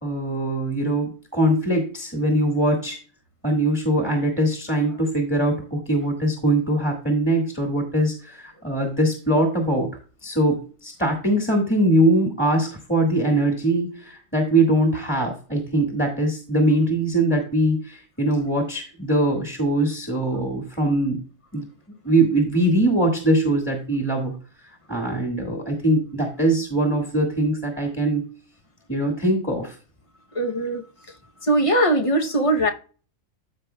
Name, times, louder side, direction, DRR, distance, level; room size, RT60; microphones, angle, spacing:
voice 1, 0.0-3.0 3.4-9.9 10.2-21.2 21.5-21.7 22.0-24.3 24.9-28.2 28.9-29.7, right 1 dB, 10° left, 1.7 m, -22 dB
voice 2, 30.3-30.8 31.4-32.7, right 1 dB, 30° left, 0.8 m, -20 dB
13.5 x 5.1 x 2.3 m
omnidirectional pair, 1.4 m